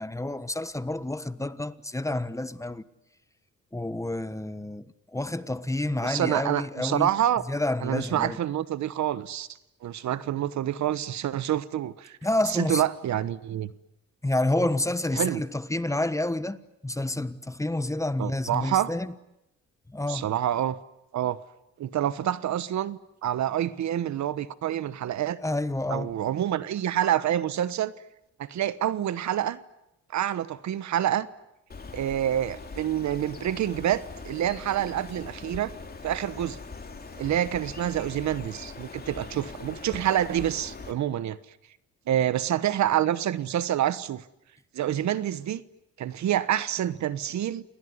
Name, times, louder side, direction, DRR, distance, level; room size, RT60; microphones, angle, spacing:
voice 1, 0.0-2.8 3.7-4.8 5.1-7.1 7.5-8.4 12.2-12.8 14.2-16.6 16.8-19.1 19.9-20.3 25.4-26.1, left 1 dB, 10° left, 1.2 m, -29 dB
voice 2, 6.0-7.4 7.8-9.5 9.8-12.2 12.5-13.7 15.2-15.4 18.2-18.9 20.1-20.8 21.1-21.4 21.8-25.4 25.9-27.9 28.4-29.6 30.1-31.3 31.9-35.7 36.0-36.6 37.2-41.4 42.1-44.2 44.7-45.6 46.0-47.6, right 11 dB, 65° right, 1.2 m, -27 dB
Bird, 31.7-40.9, left 4 dB, 30° left, 3.3 m, -42 dB
28.5 x 19.5 x 9.7 m
cardioid pair, 90°, 30 cm